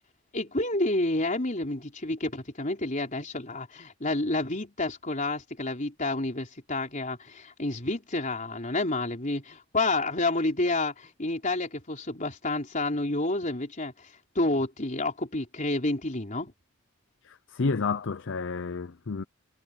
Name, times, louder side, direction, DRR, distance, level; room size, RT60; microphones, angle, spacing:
voice 1, 0.3-16.5, left 2 dB, 35° left, 4.1 m, -29 dB
voice 2, 17.2-19.2, left 4 dB, 60° left, 0.6 m, -30 dB
head